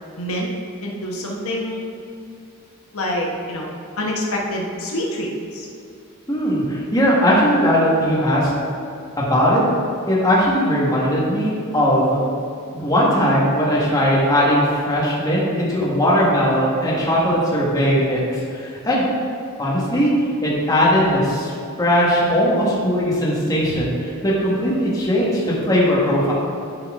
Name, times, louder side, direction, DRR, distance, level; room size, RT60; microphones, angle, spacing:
voice 1, 0.2-0.5 0.8-1.8 2.9-3.7 4.0-5.7, left 1 dB, 75° left, -1 dB, 1.0 m, -26 dB
voice 2, 6.3-8.5 9.2-9.6 10.1-12.2 12.7-19.0 19.6-21.5 21.8-26.3, equal, 15° left, -6 dB, 1.5 m, -19 dB
11.0 x 4.4 x 3.6 m, 2.6 s
head